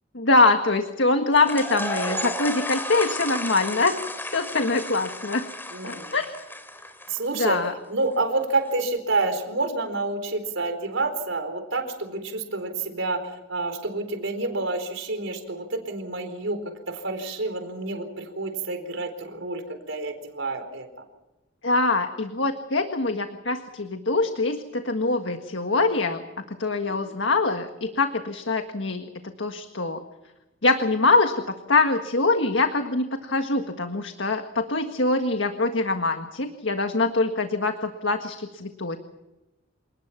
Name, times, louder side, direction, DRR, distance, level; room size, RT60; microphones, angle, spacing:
voice 1, 0.1-5.4 5.8-6.3 7.3-7.7 21.6-26.2 26.6-29.1 29.4-30.0 30.6-39.0, left 3 dB, 70° left, 6 dB, 1.7 m, -24 dB
sound 1, 1.4-7.4, left 1 dB, 10° left, 2.7 m, -33 dB
voice 2, 5.7-6.1 7.1-21.1 26.9-27.2, right 2 dB, 75° right, 7 dB, 4.3 m, -29 dB
28.0 x 19.5 x 5.9 m, 1.0 s
head